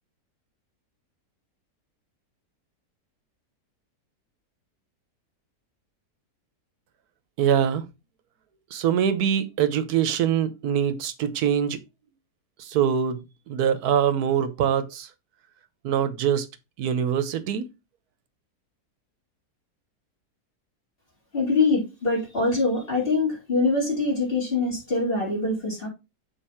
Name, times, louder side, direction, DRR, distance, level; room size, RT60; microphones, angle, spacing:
voice 1, 7.4-7.8 8.7-11.8 12.6-15.1 15.8-16.5 16.8-17.7, right 8 dB, 70° right, 1.4 m, -24 dB
voice 2, 21.3-25.9, left 3 dB, 30° left, 3.9 m, -24 dB
6.7 x 4.9 x 4.4 m
omnidirectional pair, 1.8 m